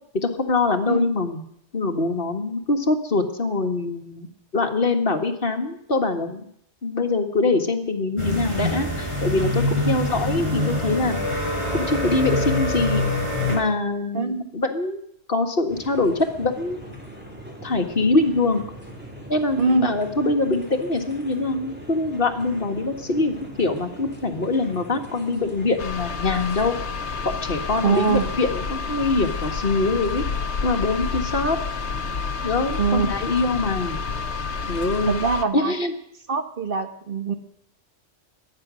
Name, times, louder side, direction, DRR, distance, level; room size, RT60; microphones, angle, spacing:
voice 1, 0.1-1.4 1.7-4.3 4.5-6.5 6.8-11.2 11.7-13.1 13.5-15.0 15.3-16.8 17.6-18.6 19.3-26.8 27.4-30.2 30.6-31.6 32.4-34.0 34.7-35.2 35.5-35.9, left 3 dB, 55° left, 4 dB, 1.9 m, -23 dB
sound 1, 8.2-13.6, left 1 dB, 25° right, 4.6 m, -25 dB
sound 2, 15.7-35.1, equal, 10° right, 3.5 m, -41 dB
voice 2, 19.6-19.9 27.8-28.3 32.8-33.1 35.1-35.7 36.3-37.3, right 4 dB, 50° right, 7 dB, 1.7 m, -23 dB
sound 3, 25.8-35.4, left 5 dB, 80° left, 1.2 m, -29 dB
23.0 x 9.3 x 6.3 m, 0.71 s
omnidirectional pair, 1.1 m